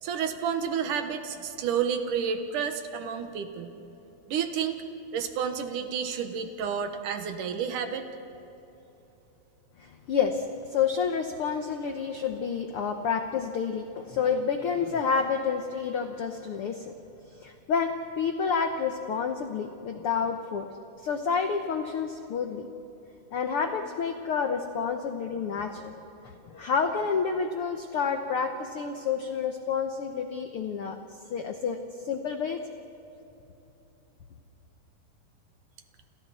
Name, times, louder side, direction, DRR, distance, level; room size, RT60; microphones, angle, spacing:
voice 1, 0.0-3.7 4.3-4.8 5.1-8.1, right 7 dB, 70° right, 7 dB, 2.7 m, -30 dB
voice 2, 9.8-16.9 17.3-20.7 21.0-22.7 23.3-31.0 31.3-32.6, left 6 dB, 90° left, 5 dB, 1.2 m, -29 dB
29.0 x 28.0 x 4.3 m, 3.0 s
omnidirectional pair, 4.0 m